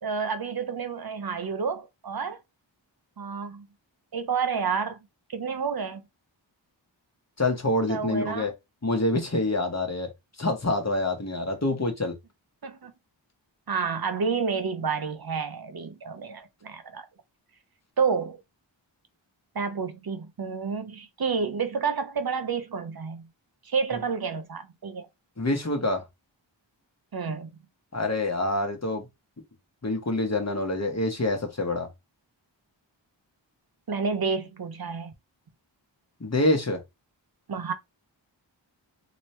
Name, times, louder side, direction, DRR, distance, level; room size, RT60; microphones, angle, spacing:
voice 1, 0.0-2.4 3.2-3.7 4.1-5.0 5.3-6.0 7.9-8.5 12.6-12.9 13.7-17.1 18.0-18.4 19.5-23.3 23.6-25.1 27.1-27.5 33.9-35.1 37.5-37.7, right 5 dB, 50° right, 0.7 m, -29 dB
voice 2, 7.4-8.5 8.8-10.1 10.4-12.1 25.4-26.0 27.9-29.1 29.8-31.9 36.2-36.8, left 2 dB, 35° left, 1.1 m, -26 dB
3.0 x 2.8 x 3.2 m
wide cardioid pair, 60°, 46 cm